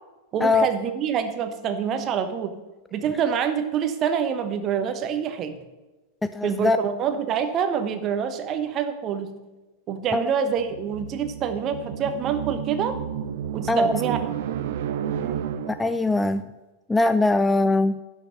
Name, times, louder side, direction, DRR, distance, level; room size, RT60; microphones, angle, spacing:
voice 1, 0.3-2.6 2.9-5.6 6.4-9.3 9.9-13.0 13.5-14.2, right 7 dB, 30° right, 1.1 m, -26 dB
voice 2, 6.3-6.8 10.1-10.2 13.7-13.9 15.2-15.4 15.7-16.4 16.9-18.0, left 2 dB, 10° left, 0.3 m, -21 dB
sound 1, 10.6-16.1, right 9 dB, 55° right, 0.7 m, -31 dB
11.0 x 5.9 x 6.0 m
figure-of-eight pair, 90°, 0 cm